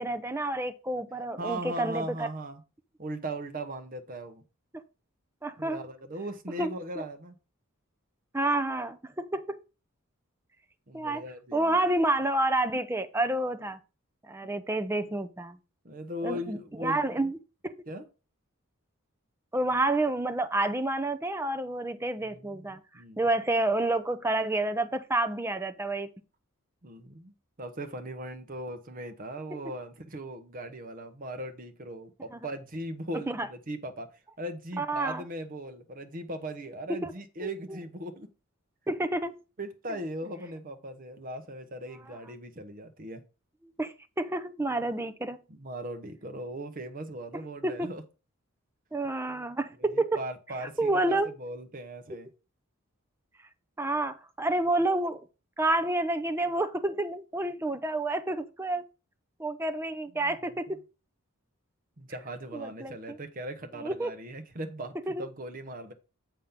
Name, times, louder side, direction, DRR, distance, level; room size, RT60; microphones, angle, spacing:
voice 1, 0.0-2.3 5.4-5.8 6.6-6.7 8.3-9.6 10.9-11.2 11.5-13.8 14.2-15.6 16.2-17.4 17.6-17.7 19.5-22.8 23.2-26.1 32.3-32.4 33.3-33.5 34.8-35.2 37.0-37.1 38.9-39.4 43.8-45.4 47.6-47.9 48.9-50.2 50.8-51.3 53.8-55.2 55.6-58.8 59.4-60.8 62.5-63.2 63.8-64.1 65.1-65.3, right 2 dB, 10° right, 0.6 m, -29 dB
voice 2, 1.4-2.6 3.0-4.4 5.6-7.4 10.9-11.8 15.8-17.1 17.9-18.1 22.3-23.3 26.8-38.3 39.6-43.2 45.5-48.0 49.8-52.3 60.1-60.7 62.0-65.9, right 1 dB, 40° right, 1.0 m, -39 dB
7.4 x 5.6 x 3.7 m
head